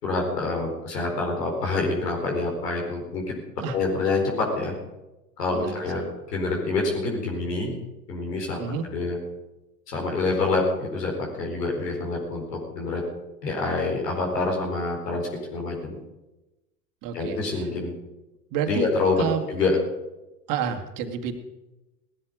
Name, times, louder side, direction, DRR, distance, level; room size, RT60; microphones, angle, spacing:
voice 1, 0.0-3.4 3.7-4.7 5.4-6.0 6.3-7.7 8.1-8.6 8.8-9.2 9.9-11.1 11.4-12.4 12.7-13.0 13.4-15.2 15.5-16.0 17.1-17.9 18.7-19.8, left 3 dB, 75° left, 0 dB, 4.7 m, -26 dB
voice 2, 5.5-6.1 8.6-8.9 17.0-17.7 18.5-18.9 19.2-19.5 20.5-21.4, right 7 dB, 40° right, 4 dB, 2.0 m, -29 dB
18.5 x 13.0 x 5.1 m, 1.0 s
figure-of-eight pair, 90°, 49 cm